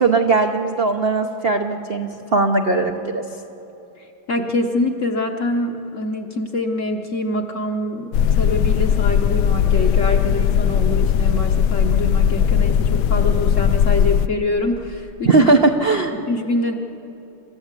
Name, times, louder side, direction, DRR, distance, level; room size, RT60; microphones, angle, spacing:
voice 1, 0.0-3.2 15.2-16.1, right 3 dB, 60° right, 4 dB, 0.6 m, -18 dB
voice 2, 4.0-15.5 16.1-16.7, left 2 dB, 50° left, 4 dB, 1.0 m, -25 dB
sound 1, 8.1-14.3, left 8 dB, 75° left, 1.4 m, -18 dB
29.0 x 13.5 x 8.2 m, 2.9 s
omnidirectional pair, 2.3 m